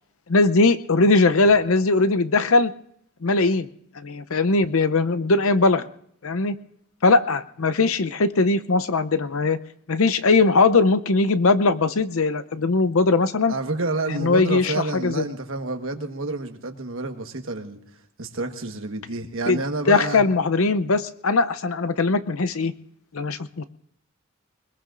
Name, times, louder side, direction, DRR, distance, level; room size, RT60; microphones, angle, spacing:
voice 1, 0.3-2.7 3.2-3.7 4.0-5.9 6.2-6.6 7.0-9.6 9.9-13.5 14.1-14.7 15.0-15.2 19.5-19.6 19.9-22.7 23.1-23.6, left 3 dB, 75° left, 11 dB, 0.7 m, -20 dB
voice 2, 13.5-17.8 18.2-20.2, right 2 dB, 65° right, 6 dB, 1.4 m, -29 dB
22.0 x 21.0 x 2.5 m, 0.66 s
head